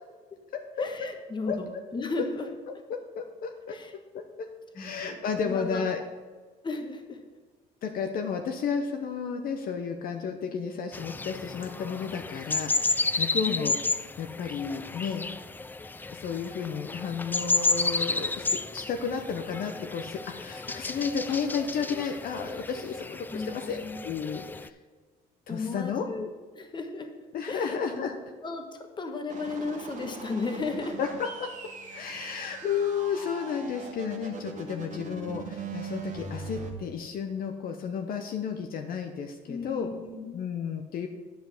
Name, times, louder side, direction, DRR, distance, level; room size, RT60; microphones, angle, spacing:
voice 1, 0.8-1.6 1.9-2.5 3.7-3.9 4.7-5.2 5.4-5.8 6.6-7.2 13.3-13.7 23.3-24.0 25.5-27.1 27.5-28.1 28.4-31.0 39.5-40.4, left 3 dB, 25° left, 5 dB, 1.2 m, -35 dB
voice 2, 2.9-3.8 4.1-4.5 4.7-6.0 7.8-13.8 14.2-15.3 16.1-24.7 25.5-26.0 27.3-28.1 31.0-31.5 31.9-39.9 40.3-41.1, left 6 dB, 60° left, 5 dB, 0.8 m, -32 dB
sound 1, 10.9-24.7, left 3 dB, 10° left, 0.3 m, -32 dB
sound 2, 29.3-36.7, right 4 dB, 45° right, 1.3 m, -40 dB
9.1 x 5.2 x 6.0 m, 1.4 s
cardioid pair, 110°, 17 cm